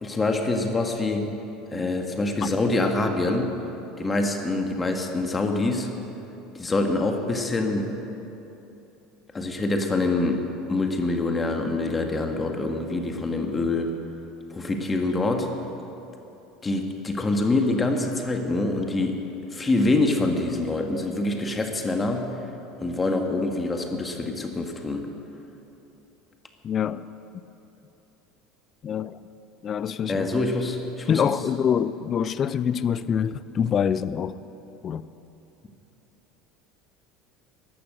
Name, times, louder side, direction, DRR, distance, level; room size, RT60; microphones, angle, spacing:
voice 1, 0.0-1.3 1.7-3.6 4.0-5.9 6.5-7.9 9.3-13.9 14.5-15.5 16.6-19.2 19.5-22.3 22.8-25.1 30.1-31.3, left 2 dB, 20° left, 1.8 m, -25 dB
voice 2, 26.6-27.0 28.8-29.2 29.6-30.5 31.1-34.4 34.8-35.1, left 8 dB, 40° left, 0.5 m, -25 dB
14.0 x 12.0 x 7.8 m
hypercardioid pair, 75°, 0 cm